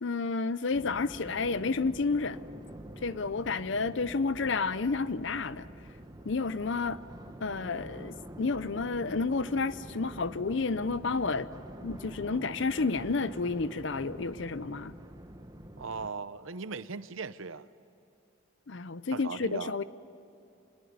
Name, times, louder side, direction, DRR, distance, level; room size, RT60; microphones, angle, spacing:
voice 1, 0.0-2.4 3.0-5.7 6.2-7.0 7.4-11.5 11.8-14.9 18.7-19.8, left 4 dB, 60° left, 0.6 m, -31 dB
sound 1, 0.7-16.1, right 1 dB, 20° right, 1.1 m, -46 dB
voice 2, 15.8-17.6 19.1-19.7, right 4 dB, 70° right, 0.8 m, -38 dB
26.5 x 20.5 x 9.4 m
head